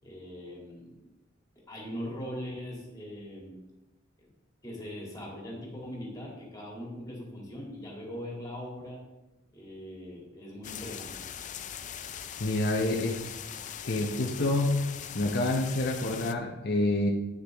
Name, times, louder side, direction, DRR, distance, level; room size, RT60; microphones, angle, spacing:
voice 1, 0.0-1.1 1.7-3.5 4.2-4.3 4.6-9.0 9.5-11.1, equal, 20° left, -4 dB, 2.4 m, -41 dB
sound 1, 10.6-16.3, left 9 dB, 40° left, 0.4 m, -41 dB
voice 2, 12.4-13.2 13.8-14.8 15.1-17.1, left 2 dB, 55° left, 0 dB, 0.8 m, -27 dB
9.4 x 6.9 x 3.5 m, 1.0 s
head